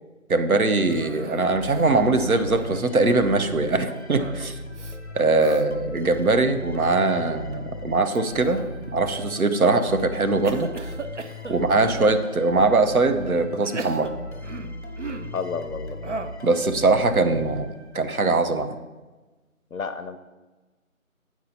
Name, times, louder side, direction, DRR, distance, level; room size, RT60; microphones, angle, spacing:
voice 1, 0.3-4.5 5.1-8.6 8.9-10.7 11.5-14.1 16.4-17.7 17.9-18.8, right 3 dB, 85° right, 8 dB, 0.9 m, -21 dB
sound 1, 0.7-18.3, left 2 dB, 50° left, 0.9 m, -38 dB
Cough, 0.9-2.1 2.4-3.1 4.1-4.5 4.7-5.0 5.4-5.6 6.2-6.6 8.2-8.9 9.5-9.9 10.4-12.2 12.9-13.0 13.6-15.4 16.0-16.5, right 4 dB, 55° right, 0.5 m, -37 dB
voice 2, 15.3-16.1 19.7-20.2, left 5 dB, 75° left, 9 dB, 0.6 m, -32 dB
8.5 x 4.6 x 4.1 m, 1.2 s
figure-of-eight pair, 170°, 42 cm